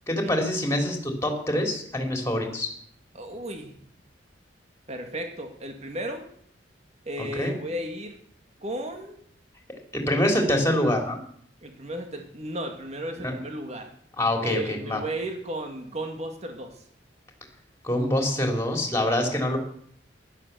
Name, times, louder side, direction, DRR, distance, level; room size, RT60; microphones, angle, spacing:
voice 1, 0.1-2.7 7.2-7.5 9.9-11.2 13.2-13.3 14.2-15.0 17.8-19.6, left 1 dB, 15° left, 3 dB, 3.6 m, -25 dB
voice 2, 3.1-3.7 4.9-6.3 7.1-8.2 8.6-9.2 11.6-13.9 14.4-16.8, right 1 dB, 40° right, 4 dB, 2.3 m, -34 dB
15.5 x 12.0 x 7.0 m, 0.62 s
head